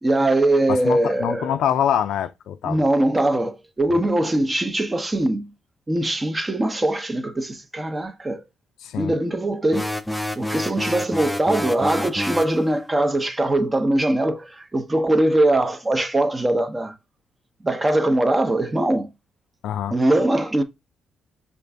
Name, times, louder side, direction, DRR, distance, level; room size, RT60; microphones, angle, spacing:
voice 1, 0.0-1.6 2.6-5.5 5.9-8.4 9.0-9.9 10.4-16.9 17.6-19.1 19.9-20.6, right 1 dB, 20° right, 0.7 m, -21 dB
voice 2, 0.7-2.8 8.8-9.1 19.6-19.9, left 9 dB, 80° left, 0.4 m, -24 dB
sound 1, 9.7-12.6, left 1 dB, 5° left, 0.3 m, -28 dB
5.1 x 2.5 x 3.3 m
cardioid pair, 90°, 0 cm